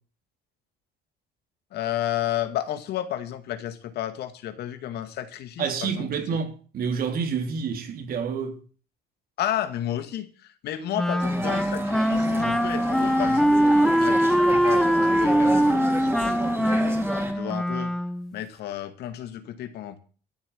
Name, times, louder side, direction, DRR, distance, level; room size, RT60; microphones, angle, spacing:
voice 1, 1.7-6.1 9.4-10.3 10.6-13.6 14.0-16.9 17.3-17.9 18.3-20.0, left 12 dB, 75° left, 2.1 m, -32 dB
voice 2, 5.6-8.6, right 6 dB, 60° right, 3.3 m, -28 dB
Wind instrument woodwind instrument, 10.9-18.3, equal, 5° left, 1.1 m, -22 dB
sound 1, 11.2-17.3, right 2 dB, 15° right, 3.4 m, -32 dB
13.5 x 7.5 x 9.7 m
cardioid pair, 110°, 17 cm